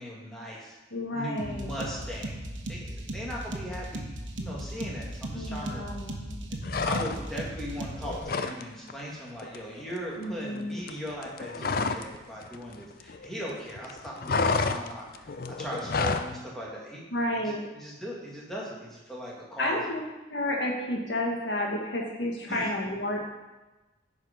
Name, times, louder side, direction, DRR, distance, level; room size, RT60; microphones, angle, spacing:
voice 1, 0.0-0.8 1.1-2.4 2.7-4.1 4.4-5.8 6.5-17.0 17.4-19.8 22.5-22.7, equal, ahead, -5 dB, 1.9 m, -39 dB
voice 2, 0.9-1.7 5.3-6.4 10.2-10.8 17.1-17.7 19.6-20.0 20.3-23.2, left 1 dB, 70° left, -1 dB, 1.6 m, -31 dB
sound 1, 1.4-8.2, right 1 dB, 85° right, 1.1 m, -37 dB
sound 2, 6.6-7.5 7.8-8.6 8.9-9.1 9.4-12.2 12.4-13.5 13.8-16.3, left 4 dB, 50° left, 0.5 m, -30 dB
10.0 x 4.9 x 5.1 m, 1.1 s
head